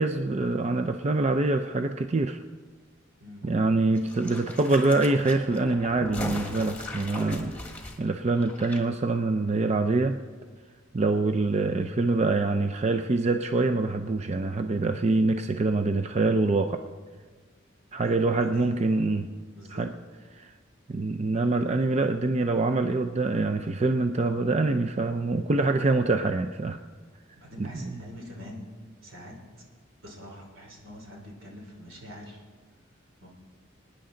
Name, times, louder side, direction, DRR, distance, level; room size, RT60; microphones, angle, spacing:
voice 1, 0.0-2.4 3.4-7.5 8.0-10.2 10.9-16.8 17.9-19.3 19.7-19.9 20.3-20.5 20.9-26.8 27.6-27.7, right 3 dB, 35° right, 6 dB, 0.4 m, -25 dB
sound 1, 3.9-8.8 9.1-9.2, left 1 dB, 5° left, 1.4 m, -38 dB
voice 2, 7.0-7.7 18.0-19.1 19.5-19.9 27.4-28.7 29.0-29.7 30.0-32.4 33.2-33.3, equal, 75° right, 0 dB, 3.2 m, -44 dB
24.5 x 9.9 x 3.8 m, 1.5 s
head